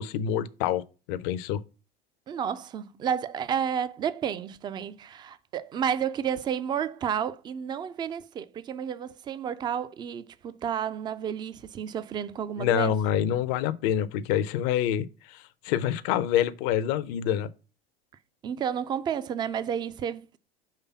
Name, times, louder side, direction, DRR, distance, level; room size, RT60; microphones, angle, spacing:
voice 1, 0.0-1.6 12.6-17.5, left 10 dB, 45° left, 0.5 m, -27 dB
voice 2, 2.3-12.9 18.4-20.4, right 8 dB, 15° right, 0.3 m, -31 dB
5.7 x 3.2 x 5.8 m
figure-of-eight pair, 80°, 30 cm